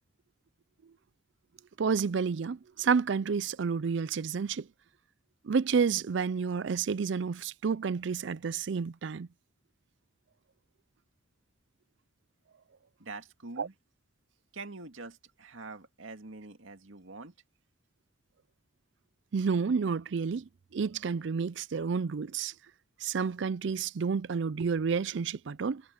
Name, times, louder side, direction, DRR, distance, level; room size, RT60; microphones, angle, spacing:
voice 1, 1.8-4.7 5.4-9.3 13.6-13.7 19.3-22.5 23.0-25.8, right 5 dB, 65° right, 0.4 m, -30 dB
voice 2, 13.0-13.8 14.5-17.3, right 3 dB, 85° right, 2.1 m, -45 dB
head